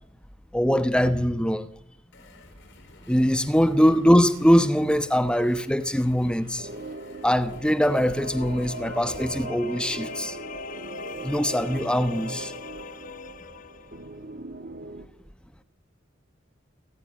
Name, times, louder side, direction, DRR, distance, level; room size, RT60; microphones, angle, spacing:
voice 1, 0.5-1.7 3.1-6.7 7.2-10.4 11.2-12.5, equal, 5° left, 1.1 m, -22 dB
sound 1, 2.1-9.3, left 2 dB, 65° left, 4.8 m, -52 dB
sound 2, 6.4-14.2, left 5 dB, 45° left, 0.9 m, -42 dB
sound 3, 6.6-15.1, right 3 dB, 50° right, 1.4 m, -40 dB
29.5 x 14.5 x 8.7 m
head